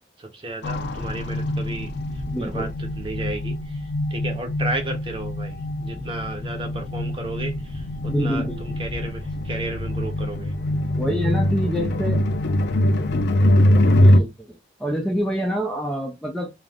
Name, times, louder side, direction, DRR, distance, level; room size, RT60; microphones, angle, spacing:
voice 1, 0.2-10.5, right 2 dB, 30° right, 0.8 m, -33 dB
sound 1, 0.6-14.2, left 1 dB, 80° left, 0.5 m, -23 dB
voice 2, 2.3-2.7 5.9-6.1 8.1-8.6 11.0-12.3 13.9-16.5, equal, 5° left, 0.4 m, -27 dB
2.4 x 2.4 x 3.3 m
head